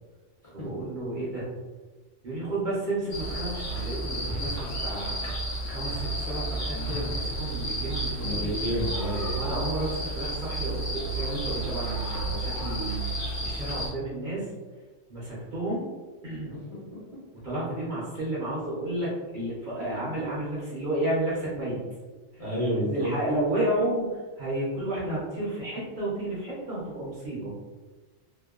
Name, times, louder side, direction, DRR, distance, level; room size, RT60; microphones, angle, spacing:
voice 1, 0.5-1.5 2.2-5.2 5.7-8.7 9.3-14.5 15.1-15.9 16.2-16.5 17.4-21.8 22.3-22.4 22.7-27.5, right 1 dB, 50° right, -7 dB, 0.7 m, -32 dB
sound 1, 3.1-13.9, right 1 dB, 80° left, 1.0 m, -31 dB
voice 2, 8.2-9.4 22.4-23.1, equal, 35° left, -8 dB, 0.8 m, -29 dB
2.8 x 2.1 x 2.3 m, 1.3 s
omnidirectional pair, 1.2 m